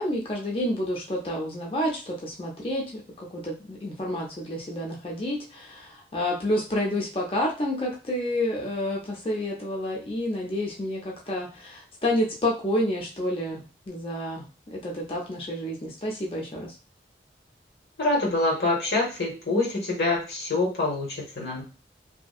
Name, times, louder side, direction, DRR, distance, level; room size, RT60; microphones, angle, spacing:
voice 1, 0.0-14.4 14.7-16.7, left 1 dB, 30° left, -2 dB, 0.5 m, -29 dB
voice 2, 18.0-21.6, left 2 dB, 70° left, -2 dB, 1.0 m, -25 dB
2.6 x 2.2 x 2.3 m, 0.34 s
head